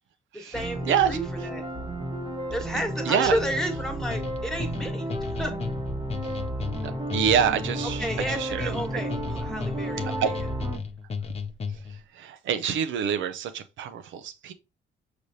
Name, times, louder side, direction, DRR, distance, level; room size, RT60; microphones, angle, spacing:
voice 1, 0.3-1.6 2.5-5.5 8.0-10.5, equal, 5° left, 1.4 m, -32 dB
sound 1, 0.5-10.8, right 1 dB, 20° right, 1.0 m, -33 dB
voice 2, 0.9-1.2 3.1-3.4 7.1-9.0 10.2-10.3 12.1-14.5, right 8 dB, 75° right, 0.5 m, -26 dB
sound 2, 4.1-12.0, left 4 dB, 30° left, 0.6 m, -34 dB
5.0 x 3.3 x 2.7 m
cardioid pair, 90°, 20 cm